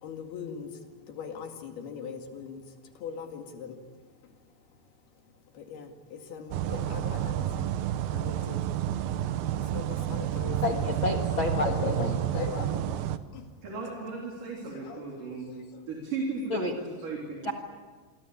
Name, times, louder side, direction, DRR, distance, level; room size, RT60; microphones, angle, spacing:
voice 1, 0.0-0.8 1.1-2.7 3.0-3.8 5.5-7.7 8.1-8.7 9.6-10.9 11.6-13.1 13.3-13.5 14.7-15.4 15.7-15.8, left 5 dB, 65° left, 4 dB, 4.0 m, -39 dB
sound 1, 6.5-13.2, right 11 dB, 70° right, 2.5 m, -30 dB
voice 2, 10.6-11.7 12.0-12.1 16.5-16.7 17.4-17.5, left 3 dB, 50° left, 6 dB, 1.5 m, -29 dB
voice 3, 13.6-15.6 15.9-17.5, right 3 dB, 50° right, -1 dB, 4.9 m, -36 dB
28.0 x 23.5 x 8.6 m, 1.4 s
omnidirectional pair, 5.0 m